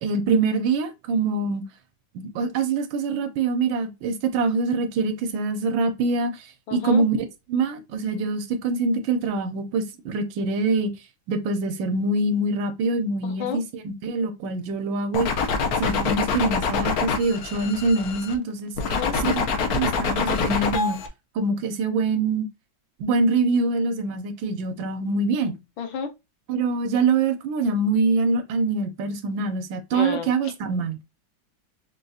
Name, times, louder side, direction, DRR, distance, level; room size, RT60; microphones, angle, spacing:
voice 1, 0.0-1.6 2.1-7.2 7.5-10.9 11.3-15.3 15.8-18.7 19.2-19.4 19.7-21.0 21.3-22.5 23.0-25.6 26.5-31.0, right 3 dB, 85° right, 1.4 m, -24 dB
voice 2, 6.7-7.0 13.2-13.6 18.8-19.2 25.8-26.1 29.9-30.5, left 7 dB, 90° left, 1.6 m, -31 dB
sound 1, 15.1-18.3 18.8-21.1, left 5 dB, 65° left, 1.1 m, -25 dB
4.9 x 2.3 x 2.6 m
omnidirectional pair, 2.1 m